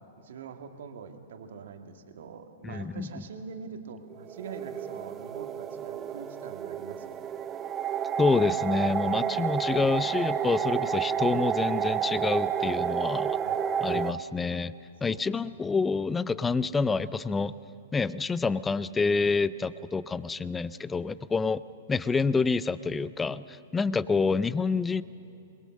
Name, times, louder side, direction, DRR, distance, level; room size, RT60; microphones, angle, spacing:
voice 1, 0.2-7.3 13.4-13.8 15.1-15.3, right 5 dB, 60° right, 6 dB, 1.9 m, -44 dB
voice 2, 2.6-3.2 8.2-13.4 13.8-14.7 15.0-17.5 17.9-21.6 21.9-25.0, left 4 dB, 10° left, 18 dB, 0.6 m, -27 dB
sound 1, 4.1-14.1, right 8 dB, 25° right, 0.7 m, -30 dB
27.0 x 22.0 x 6.6 m, 2.7 s
figure-of-eight pair, 110°, 0 cm